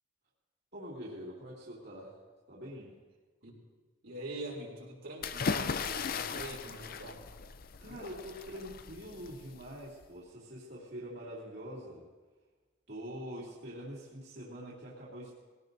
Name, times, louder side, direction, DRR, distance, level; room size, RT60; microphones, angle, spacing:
voice 1, 0.7-2.1 2.5-2.9 7.8-12.1 12.9-15.4, equal, 55° right, -6 dB, 2.7 m, -44 dB
voice 2, 4.0-7.2, right 1 dB, 75° right, -3 dB, 3.2 m, -44 dB
sound 1, 5.2-10.0, left 5 dB, 45° left, 0.5 m, -37 dB
21.0 x 17.0 x 2.7 m, 1.3 s
head